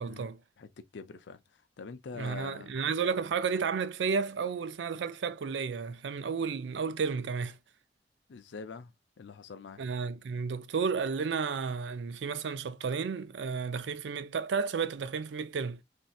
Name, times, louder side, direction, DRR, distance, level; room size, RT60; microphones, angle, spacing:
voice 1, 0.0-0.4 2.2-7.6 9.8-15.8, right 5 dB, 90° right, 0.4 m, -32 dB
voice 2, 0.6-2.7 8.3-9.8, left 5 dB, 85° left, 0.5 m, -45 dB
3.1 x 2.8 x 2.3 m
head